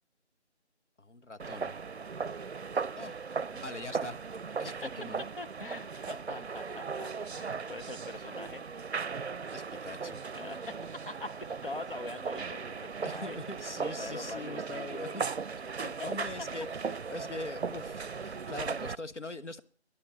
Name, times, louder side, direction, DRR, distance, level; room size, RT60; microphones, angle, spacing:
voice 1, 1.0-1.8 3.0-4.2 4.6-5.2 6.3-6.4 9.5-10.2 13.0-15.3 15.7-16.7 17.1-19.6, left 2 dB, 90° left, 1.2 m, -42 dB
sound 1, 1.4-18.9, right 5 dB, 65° right, 0.5 m, -37 dB
voice 2, 4.5-4.9 5.4-8.6 10.3-10.8 11.0-13.4 13.8-15.2 15.8-16.1, left 2 dB, 50° left, 0.9 m, -43 dB
10.5 x 7.6 x 9.6 m
figure-of-eight pair, 165°, 34 cm